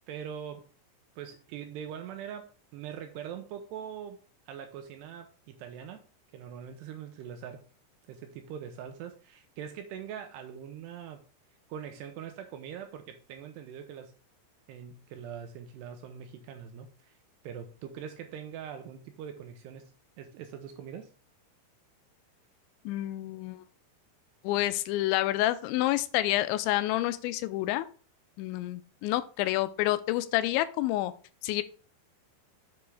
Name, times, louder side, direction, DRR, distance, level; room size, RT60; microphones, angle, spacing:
voice 1, 0.1-0.7 1.2-4.2 4.5-6.1 6.3-7.6 8.1-11.2 11.7-14.2 14.7-17.2 17.4-21.1, right 8 dB, 80° right, 7 dB, 2.5 m, -42 dB
voice 2, 22.9-23.6 24.4-27.9 28.4-31.1 31.4-31.6, left 15 dB, 85° left, 13 dB, 2.8 m, -28 dB
8.2 x 7.0 x 3.4 m, 0.39 s
omnidirectional pair, 5.4 m